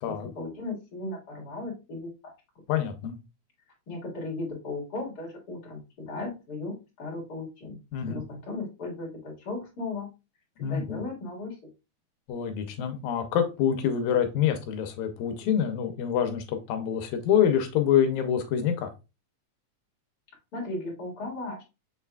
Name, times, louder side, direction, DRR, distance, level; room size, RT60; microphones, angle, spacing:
voice 1, 0.1-2.3 3.9-7.8 8.1-10.1 10.6-11.6 20.5-21.7, left 2 dB, 35° left, 2.3 m, -36 dB
voice 2, 2.7-3.2 7.9-8.2 10.6-11.0 12.3-18.9, left 9 dB, 85° left, 2.1 m, -26 dB
6.6 x 3.3 x 2.2 m
omnidirectional pair, 3.3 m